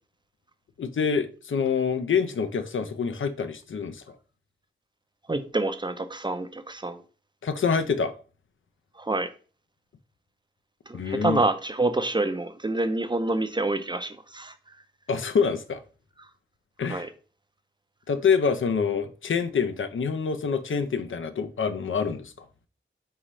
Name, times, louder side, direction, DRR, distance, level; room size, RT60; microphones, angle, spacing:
voice 1, 0.8-4.2 7.4-8.1 10.9-11.4 15.1-15.8 16.8-17.1 18.1-22.3, left 6 dB, 70° left, 0.5 m, -26 dB
voice 2, 5.3-7.0 9.0-9.3 10.9-14.5 16.9-17.1, right 2 dB, 20° right, 0.4 m, -27 dB
4.1 x 3.7 x 3.1 m
wide cardioid pair, 90°, 21 cm